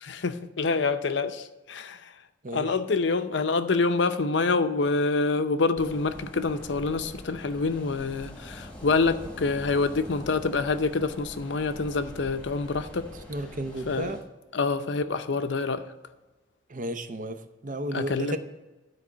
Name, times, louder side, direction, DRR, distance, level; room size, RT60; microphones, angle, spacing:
voice 1, 0.0-2.1 2.5-13.1 13.9-14.1 14.5-15.9 17.9-18.4, left 3 dB, 70° left, 0.6 m, -26 dB
voice 2, 2.4-2.8 13.3-14.2 16.7-18.4, right 1 dB, 40° right, 0.7 m, -33 dB
sound 1, 5.8-14.2, left 1 dB, 5° left, 1.2 m, -44 dB
12.0 x 4.7 x 7.3 m
head